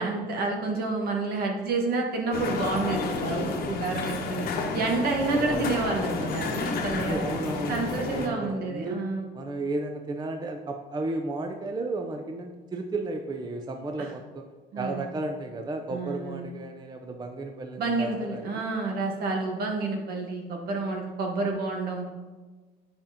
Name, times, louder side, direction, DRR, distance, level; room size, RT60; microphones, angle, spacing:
voice 1, 0.0-7.2 7.7-9.2 14.0-14.1 14.7-15.1 15.9-16.4 17.8-22.1, right 3 dB, 65° right, 1 dB, 1.3 m, -29 dB
sound 1, 2.3-8.3, left 4 dB, 60° left, 0.9 m, -31 dB
voice 2, 5.3-5.7 6.9-9.0 9.3-14.5 14.8-18.6, right 2 dB, 25° right, 4 dB, 0.5 m, -34 dB
8.5 x 5.1 x 2.9 m, 1.3 s
cardioid pair, 110°, 17 cm